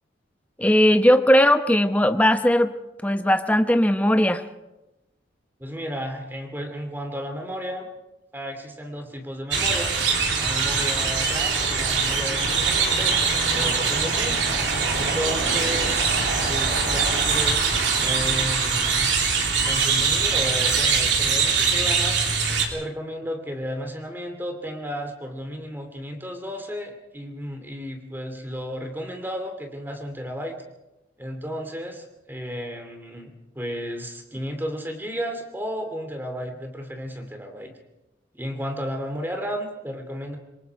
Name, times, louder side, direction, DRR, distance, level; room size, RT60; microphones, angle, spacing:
voice 1, 0.6-2.7 3.0-4.4, equal, 10° left, 8 dB, 1.0 m, -18 dB
voice 2, 5.6-7.9 8.3-9.9 10.4-13.2 13.5-14.4 14.9-19.1 19.6-22.2 22.7-30.6 31.2-37.7 38.3-40.4, equal, 10° right, 4 dB, 2.7 m, -33 dB
sound 1, 9.5-22.7, right 5 dB, 70° right, 3.4 m, -22 dB
26.5 x 22.0 x 4.7 m, 0.98 s
head